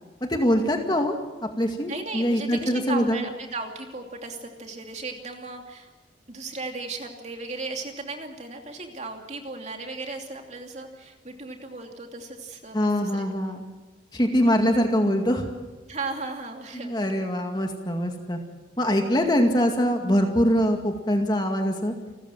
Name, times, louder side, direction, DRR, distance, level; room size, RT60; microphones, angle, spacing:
voice 1, 0.2-1.2 1.6-3.2 12.7-13.6 14.1-15.5 16.7-18.4 18.8-21.9, equal, 25° left, 3 dB, 2.1 m, -23 dB
voice 2, 1.9-5.9 6.3-13.6 15.9-17.2, right 3 dB, 40° right, 3 dB, 2.8 m, -36 dB
29.0 x 14.0 x 7.7 m, 1.2 s
head